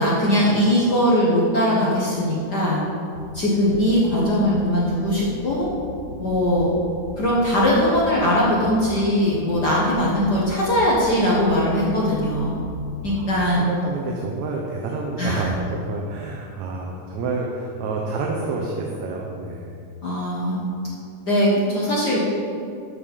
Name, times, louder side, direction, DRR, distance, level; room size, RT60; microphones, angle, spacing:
voice 1, 0.0-2.8 3.3-5.7 6.2-6.7 7.2-12.6 13.0-13.6 15.2-15.5 20.0-20.6 21.2-22.2, equal, 50° left, -6 dB, 1.2 m, -20 dB
sound 1, 3.1-13.3, left 2 dB, 75° left, 2.6 m, -39 dB
voice 2, 13.0-19.8, right 3 dB, 75° right, -1 dB, 2.1 m, -29 dB
13.0 x 5.0 x 5.4 m, 2.5 s
omnidirectional pair, 3.5 m